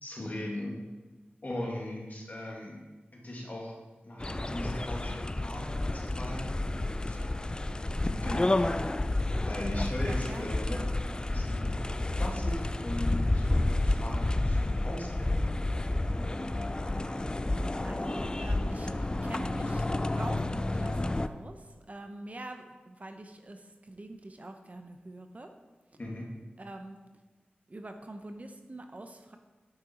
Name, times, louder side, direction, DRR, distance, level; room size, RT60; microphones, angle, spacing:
voice 1, 0.0-0.7 1.4-2.8 3.1-3.7 4.0-7.2 8.1-8.7 9.4-10.8 11.2-15.4 26.0-26.3, left 1 dB, 45° left, -1 dB, 2.0 m, -38 dB
sound 1, 4.2-21.3, left 2 dB, 25° left, 0.4 m, -30 dB
voice 2, 10.0-10.6 17.8-18.9 19.2-19.9 20.2-25.5 26.6-27.0 27.7-29.4, right 2 dB, 40° right, 6 dB, 0.8 m, -45 dB
9.0 x 6.6 x 4.3 m, 1.2 s
wide cardioid pair, 60°, 4 cm